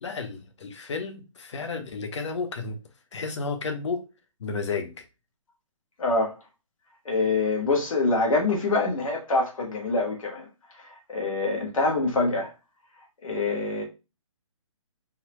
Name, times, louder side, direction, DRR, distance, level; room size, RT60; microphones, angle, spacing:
voice 1, 0.0-2.8 3.1-4.0 4.4-4.9, left 4 dB, 60° left, 0.8 m, -32 dB
voice 2, 6.0-6.3 7.0-10.5 10.7-12.5 13.2-13.8, left 3 dB, 85° left, 1.3 m, -25 dB
3.7 x 2.2 x 3.0 m
hypercardioid pair, 175°, 17 cm